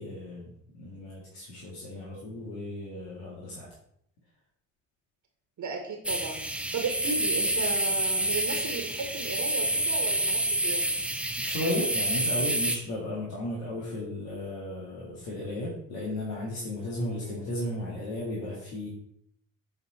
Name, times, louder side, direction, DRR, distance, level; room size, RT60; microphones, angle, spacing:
voice 1, 0.0-3.7 11.4-18.9, left 1 dB, 70° left, -6 dB, 2.1 m, -35 dB
voice 2, 5.6-6.4 6.7-10.8 17.2-17.4, right 4 dB, 50° right, 3 dB, 1.5 m, -35 dB
sound 1, 6.1-12.8, right 1 dB, 5° right, 0.8 m, -28 dB
8.0 x 4.0 x 4.2 m, 0.72 s
hypercardioid pair, 55°, 38 cm